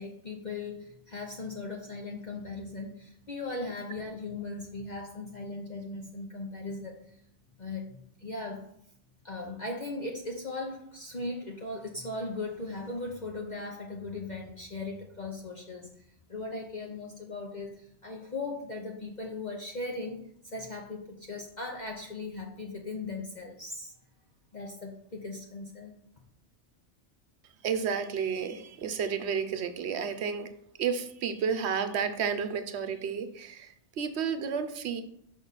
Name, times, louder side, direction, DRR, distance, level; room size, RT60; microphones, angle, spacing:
voice 1, 0.0-7.2 7.6-8.7 9.2-15.9 16.3-23.9 24.5-26.0, left 2 dB, 45° left, 0 dB, 0.8 m, -38 dB
voice 2, 27.6-30.5 30.8-35.0, right 6 dB, 65° right, 10 dB, 1.0 m, -31 dB
6.1 x 5.5 x 4.0 m, 0.69 s
omnidirectional pair, 1.2 m